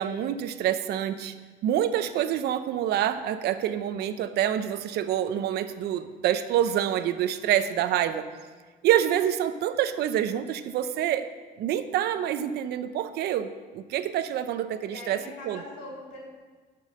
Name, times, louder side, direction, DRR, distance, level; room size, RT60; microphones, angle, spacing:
voice 1, 0.0-1.3 1.6-8.2 8.8-11.3 11.6-15.6, right 10 dB, 75° right, 11 dB, 0.7 m, -27 dB
voice 2, 7.4-7.8 14.8-16.2, left 2 dB, 85° left, -3 dB, 3.3 m, -43 dB
12.0 x 5.5 x 7.7 m, 1.4 s
cardioid pair, 110°, 17 cm